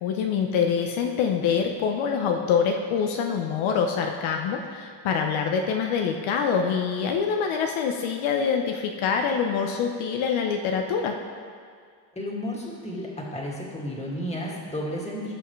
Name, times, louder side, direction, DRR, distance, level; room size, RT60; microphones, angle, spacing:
voice 1, 0.0-11.1, left 6 dB, 70° left, 3 dB, 0.9 m, -25 dB
voice 2, 12.2-15.3, equal, 15° left, -3 dB, 2.2 m, -32 dB
16.5 x 5.7 x 3.2 m, 2.1 s
cardioid pair, 100°, 49 cm